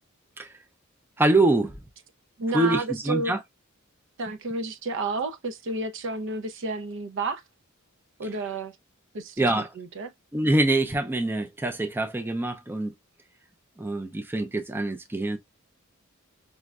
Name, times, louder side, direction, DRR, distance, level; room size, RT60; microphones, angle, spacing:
voice 1, 1.2-1.8 2.5-3.4 9.4-9.7 10.3-12.9 13.8-15.4, right 2 dB, 10° right, 0.5 m, -24 dB
voice 2, 2.4-3.3 4.2-7.4 8.2-8.7 9.1-9.4 9.8-10.1, right 3 dB, 60° right, 0.5 m, -31 dB
5.1 x 2.1 x 2.3 m
head